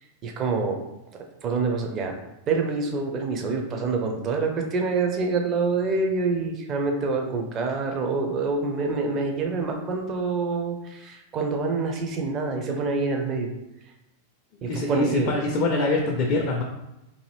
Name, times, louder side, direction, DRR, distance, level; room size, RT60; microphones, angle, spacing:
voice 1, 0.2-0.8 1.1-2.1 2.5-13.5 14.6-15.4, right 4 dB, 30° right, 3 dB, 0.5 m, -26 dB
voice 2, 14.7-16.6, left 2 dB, 40° left, 1 dB, 0.4 m, -24 dB
2.6 x 2.5 x 3.2 m, 0.93 s
figure-of-eight pair, 90°, 0 cm